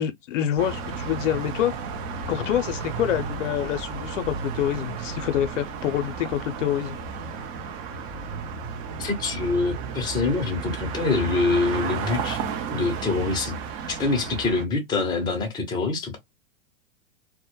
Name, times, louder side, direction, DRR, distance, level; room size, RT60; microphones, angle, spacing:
voice 1, 0.0-1.7 2.3-7.0, left 11 dB, 65° left, 0.6 m, -26 dB
sound 1, 0.6-14.6, right 6 dB, 35° right, 0.5 m, -33 dB
voice 2, 9.0-12.4 12.7-13.6 13.9-16.2, left 3 dB, 10° left, 0.6 m, -25 dB
2.1 x 2.1 x 2.9 m
hypercardioid pair, 120°, 40 cm